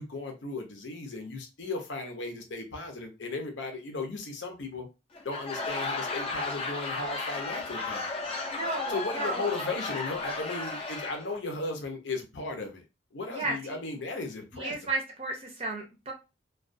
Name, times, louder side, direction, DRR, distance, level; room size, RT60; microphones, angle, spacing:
voice 1, 0.0-4.9 5.2-8.1 8.9-12.8 13.1-14.7, left 3 dB, 80° left, 0.7 m, -36 dB
Laughter / Crowd, 5.1-11.4, left 3 dB, 30° left, 0.4 m, -34 dB
voice 2, 8.5-9.4 13.3-13.6 14.5-16.1, right 2 dB, 30° right, 0.5 m, -33 dB
2.3 x 2.3 x 2.5 m
head